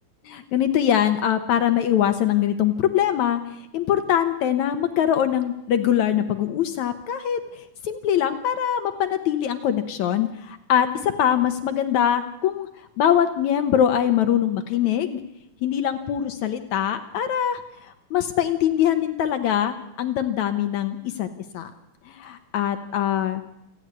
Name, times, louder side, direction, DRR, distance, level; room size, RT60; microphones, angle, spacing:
voice 1, 0.3-3.4 3.7-7.4 7.8-12.7 13.0-15.2 15.6-21.3 21.5-21.7 22.1-23.4, left 10 dB, 75° left, 8 dB, 2.3 m, -23 dB
28.5 x 9.8 x 9.6 m, 0.86 s
omnidirectional pair, 3.5 m